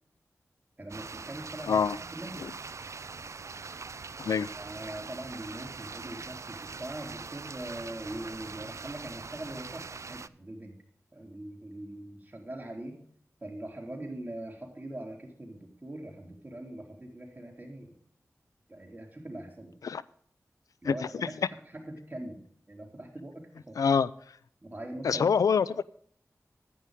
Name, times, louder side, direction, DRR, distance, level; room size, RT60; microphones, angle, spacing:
voice 1, 0.8-1.8 2.1-2.5 4.5-10.8 11.1-13.0 13.4-17.9 18.7-19.8 20.8-23.8 24.6-25.2, right 1 dB, 30° right, 0 dB, 4.0 m, -42 dB
sound 1, 0.9-10.3, right 4 dB, 60° right, 0.4 m, -42 dB
voice 2, 1.7-2.0 2.4-2.5 4.2-4.5 19.8-20.0 20.8-21.3 23.8-24.1 25.0-25.8, left 6 dB, 90° left, 18 dB, 0.4 m, -25 dB
11.0 x 9.7 x 3.6 m, 0.62 s
cardioid pair, 40°, 6 cm